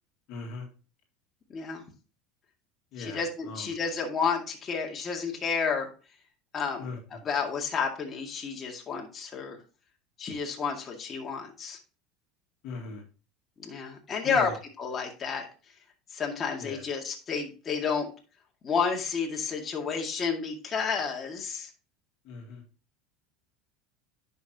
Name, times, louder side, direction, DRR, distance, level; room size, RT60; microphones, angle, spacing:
voice 1, 0.3-0.7 2.9-3.7 6.8-7.2 12.6-13.0 14.2-14.5 16.6-16.8 22.2-22.6, left 3 dB, 60° left, 2 dB, 1.9 m, -39 dB
voice 2, 1.5-1.8 3.0-5.9 6.5-6.8 7.2-9.6 10.2-11.8 13.6-14.5 14.8-15.5 16.1-18.1 18.6-21.7, left 5 dB, 30° left, 0 dB, 2.1 m, -31 dB
10.0 x 5.5 x 2.9 m, 0.35 s
hypercardioid pair, 90°, 0 cm